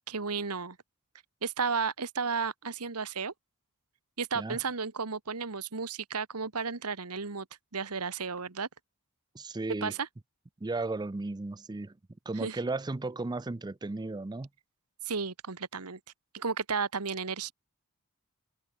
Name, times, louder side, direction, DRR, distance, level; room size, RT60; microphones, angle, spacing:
voice 1, 0.1-0.8 1.4-3.3 4.2-7.4 7.7-8.7 9.8-10.1 12.4-12.6 15.0-16.0 16.3-17.5, right 5 dB, 90° right, 1.6 m, -33 dB
voice 2, 9.3-9.9 10.6-12.0 12.3-14.5, right 2 dB, 20° right, 0.5 m, -35 dB
open air
head